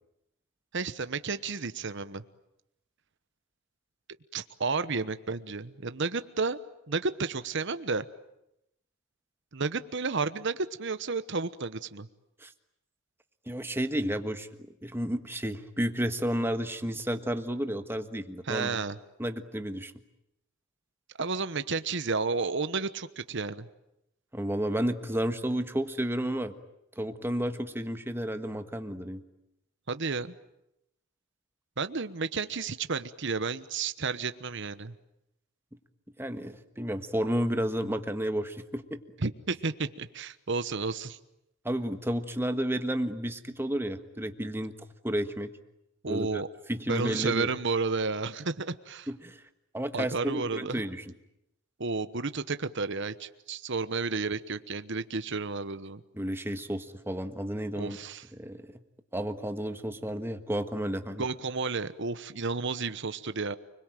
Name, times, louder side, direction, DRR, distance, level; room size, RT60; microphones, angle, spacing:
voice 1, 0.7-2.2 4.3-6.6 6.9-8.1 9.5-12.1 18.5-19.0 21.2-23.7 29.9-30.3 31.8-34.9 39.2-41.2 46.0-46.5 46.9-49.1 49.9-50.8 51.8-56.0 57.7-58.2 61.2-63.5, right 4 dB, 60° right, 12 dB, 1.1 m, -32 dB
voice 2, 13.5-14.5 14.8-18.8 19.2-19.9 24.3-26.5 27.0-29.2 36.2-39.0 41.6-44.7 45.0-45.5 46.1-46.4 46.7-47.5 49.1-49.4 49.7-51.1 56.1-58.0 58.3-58.7 59.1-61.2, equal, 10° right, 8 dB, 1.5 m, -31 dB
30.0 x 22.0 x 9.2 m, 0.85 s
head